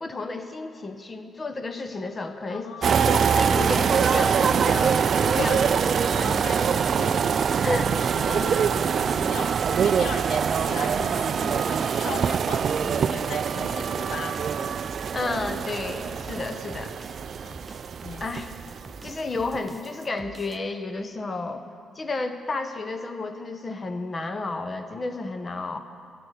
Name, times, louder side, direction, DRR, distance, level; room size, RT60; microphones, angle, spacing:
voice 1, 0.0-2.7 3.1-5.7 6.2-6.6 7.6-7.9 15.1-16.9 18.2-18.5 19.0-21.6 21.9-25.8, left 3 dB, 40° left, 8 dB, 0.9 m, -31 dB
voice 2, 2.5-3.1 5.3-5.8 6.1-14.4 17.4-17.6 18.0-18.3, left 5 dB, 65° left, 7 dB, 0.8 m, -38 dB
sound 1, 2.8-19.1 19.4-19.7, right 7 dB, 60° right, 0.3 m, -24 dB
sound 2, 13.3-20.7, right 2 dB, 25° right, 0.6 m, -47 dB
12.0 x 7.7 x 6.6 m, 2.2 s
supercardioid pair, 55°, 0 cm